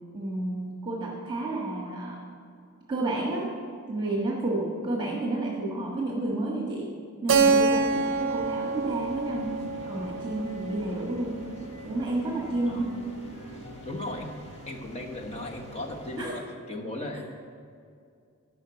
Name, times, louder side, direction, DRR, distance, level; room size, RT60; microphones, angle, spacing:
voice 1, 0.1-2.2 2.9-3.5 3.9-6.9 7.2-9.6 9.9-11.4 11.8-13.0 16.2-16.4, right 2 dB, 20° right, -2 dB, 1.5 m, -30 dB
sound 1, 7.3-16.3, equal, 55° left, 1.6 m, -45 dB
Keyboard (musical), 7.3-11.8, right 4 dB, 60° right, 0.6 m, -27 dB
voice 2, 13.8-14.4 14.7-17.2, left 1 dB, 30° left, 2 dB, 1.2 m, -36 dB
11.0 x 5.8 x 7.8 m, 2.3 s
head